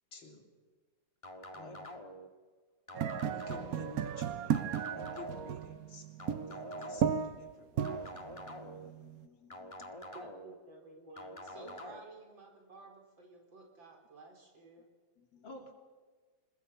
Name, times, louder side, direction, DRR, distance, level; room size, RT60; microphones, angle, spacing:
voice 1, 0.1-0.5 1.5-1.9 3.3-6.1 6.5-8.3 15.4-15.7, left 3 dB, 85° left, 2 dB, 3.9 m, -52 dB
sound 1, 1.2-2.3 2.9-3.9 4.5-5.6 6.2-7.2 7.8-8.9 9.5-10.5 11.2-12.0, left 1 dB, 20° left, 1.6 m, -47 dB
sound 2, 2.9-9.2, right 8 dB, 60° right, 1.1 m, -35 dB
voice 2, 8.1-9.9 11.6-11.8 15.2-15.4, left 7 dB, 55° left, 10 dB, 1.6 m, -62 dB
voice 3, 10.1-14.9, right 3 dB, 85° right, 1 dB, 5.0 m, -53 dB
26.5 x 21.0 x 5.7 m, 1.4 s
omnidirectional pair, 2.0 m